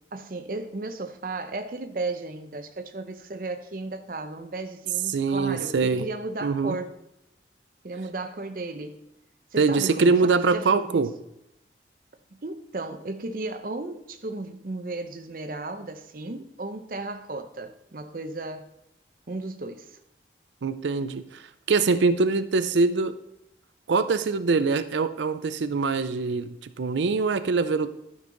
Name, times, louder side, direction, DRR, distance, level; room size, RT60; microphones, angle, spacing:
voice 1, 0.1-6.9 7.8-9.0 9.5-11.1 12.3-18.7 19.3-20.0, right 2 dB, 50° right, 0.7 m, -35 dB
voice 2, 5.1-6.1 6.4-6.8 9.6-11.1 20.6-23.2 23.9-27.9, right 4 dB, 85° right, 0.5 m, -23 dB
12.0 x 5.4 x 3.9 m
head